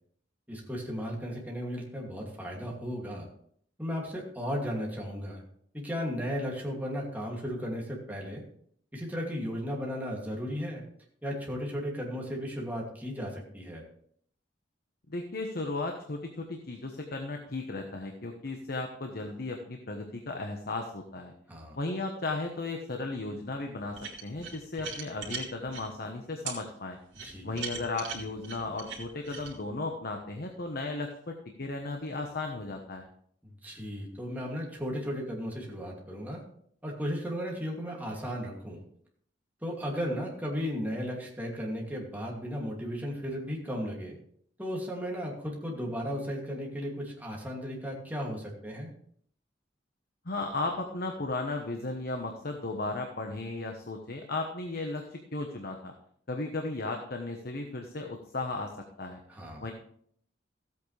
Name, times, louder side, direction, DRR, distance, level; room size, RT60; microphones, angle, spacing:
voice 1, 0.5-3.3 3.8-5.4 5.7-8.4 8.9-10.8 11.2-13.8 21.5-21.8 27.2-27.6 33.4-36.4 36.8-38.8 39.6-44.2 44.6-48.9 59.3-59.7, equal, 10° right, -2 dB, 2.5 m, -35 dB
voice 2, 15.1-21.3 21.8-27.0 27.4-33.1 50.2-55.9 56.3-58.7 59.0-59.2 59.6-59.7, left 2 dB, 55° left, 3 dB, 1.1 m, -35 dB
sound 1, 23.9-25.8 26.5-26.6 27.1-29.5, right 5 dB, 85° right, 2.5 m, -39 dB
15.0 x 8.5 x 3.3 m, 0.64 s
head